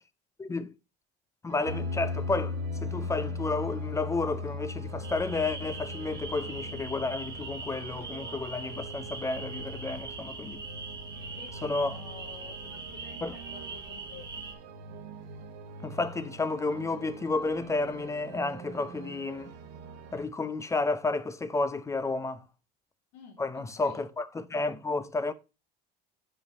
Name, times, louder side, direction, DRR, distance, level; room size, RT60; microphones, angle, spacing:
voice 1, 0.4-0.7 1.4-10.6 11.6-12.0 13.2-13.4 15.8-19.5 20.1-22.4 23.4-25.3, left 3 dB, 15° left, 0.5 m, -31 dB
sound 1, 1.5-20.3, right 5 dB, 80° right, 1.4 m, -46 dB
sound 2, 1.7-11.9, left 4 dB, 60° right, 1.1 m, -38 dB
sound 3, 5.0-14.5, right 4 dB, 20° right, 1.1 m, -42 dB
voice 2, 11.4-14.3 23.1-24.0, left 7 dB, 80° left, 1.9 m, -50 dB
5.5 x 5.0 x 5.3 m
cardioid pair, 125°, 21 cm